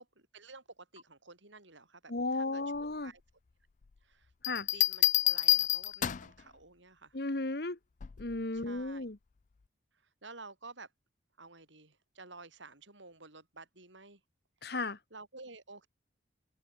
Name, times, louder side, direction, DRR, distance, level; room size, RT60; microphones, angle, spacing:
voice 1, 0.0-3.2 4.0-4.3 4.7-7.2 8.5-9.1 10.2-10.9 11.4-14.2 15.1-15.9, right 3 dB, 75° right, 6.6 m, -52 dB
voice 2, 2.1-3.1 4.5-4.7 7.1-7.8 8.2-9.2 14.6-15.0, left 2 dB, 55° left, 1.3 m, -34 dB
Bell, 4.4-6.4 8.0-8.3, left 14 dB, 40° left, 0.4 m, -28 dB
open air
head